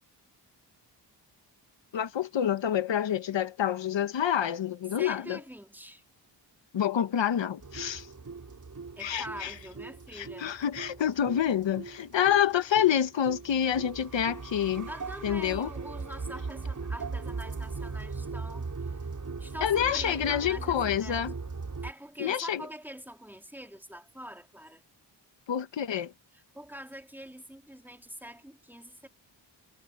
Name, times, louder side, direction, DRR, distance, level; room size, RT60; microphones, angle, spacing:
voice 1, 1.9-5.4 6.7-8.1 9.0-9.5 10.1-14.9 15.2-15.7 19.6-21.3 22.2-22.7 25.5-26.1, left 9 dB, 90° left, 1.4 m, -27 dB
voice 2, 5.0-6.0 9.0-10.5 14.9-18.7 19.4-21.2 21.8-24.8 26.5-29.1, equal, 5° right, 3.0 m, -44 dB
sound 1, 7.6-21.9, right 4 dB, 45° right, 5.2 m, -39 dB
cardioid pair, 85°, 43 cm